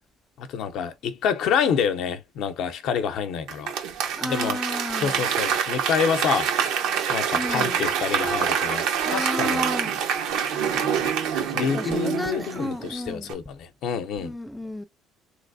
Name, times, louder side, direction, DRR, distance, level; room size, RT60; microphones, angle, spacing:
voice 1, 0.4-3.7 4.2-4.6 5.0-6.5 7.1-9.6 11.5-14.3, left 7 dB, 70° left, 0.6 m, -27 dB
Applause / Crowd, 3.5-12.9 13.3-13.4, right 8 dB, 85° right, 0.8 m, -26 dB
voice 2, 4.2-5.3 7.3-7.9 9.0-9.9 11.6-13.4 14.2-14.8, left 1 dB, ahead, 0.3 m, -32 dB
3.3 x 2.9 x 2.6 m
cardioid pair, 115°, 0 cm